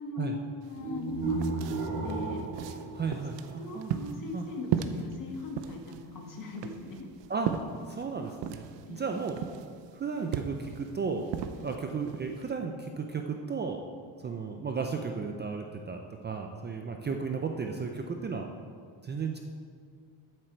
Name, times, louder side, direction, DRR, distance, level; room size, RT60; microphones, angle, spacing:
voice 1, 0.0-2.8 3.6-7.1 8.8-9.3, left 3 dB, 45° left, 1 dB, 1.7 m, -40 dB
sound 1, 0.6-0.7 1.0-12.5, right 9 dB, 65° right, 0.7 m, -37 dB
sound 2, 0.8-3.9, right 3 dB, 40° right, 3.1 m, -34 dB
voice 2, 2.9-3.9 4.3-4.4 7.3-7.5 7.9-9.4 9.9-11.3 11.6-13.8 14.2-18.4 19.0-19.4, right 5 dB, 20° right, 4 dB, 0.5 m, -34 dB
13.0 x 7.7 x 4.5 m, 2.1 s
cardioid pair, 135°, 47 cm